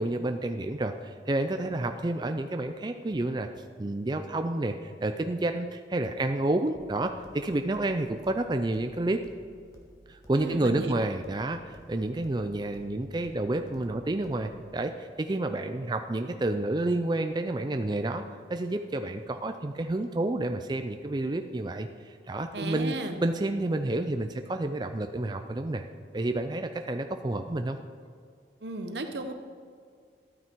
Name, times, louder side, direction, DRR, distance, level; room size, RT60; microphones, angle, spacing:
voice 1, 0.0-3.5 3.8-9.2 10.1-18.2 18.5-25.8 26.1-27.8, right 2 dB, 25° right, 6 dB, 0.4 m, -30 dB
sound 1, 6.7-14.7, right 1 dB, 20° left, 1.5 m, -55 dB
voice 2, 10.3-10.9 22.5-23.2 28.6-29.3, right 2 dB, 70° right, 6 dB, 1.1 m, -34 dB
12.5 x 9.2 x 4.6 m, 2.2 s
head